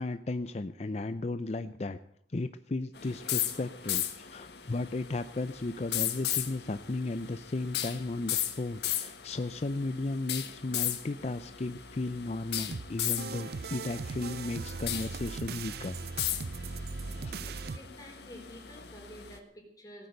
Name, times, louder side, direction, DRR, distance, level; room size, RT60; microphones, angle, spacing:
voice 1, 0.0-2.0 2.3-16.0 17.0-17.6, left 2 dB, 40° left, 11 dB, 0.5 m, -35 dB
sound 1, 3.0-19.4, left 11 dB, 70° left, 1.7 m, -37 dB
sound 2, 12.7-17.8, right 4 dB, 60° right, 0.5 m, -39 dB
voice 2, 17.7-20.1, equal, 20° left, 0 dB, 4.0 m, -50 dB
17.5 x 9.5 x 8.0 m, 0.67 s
head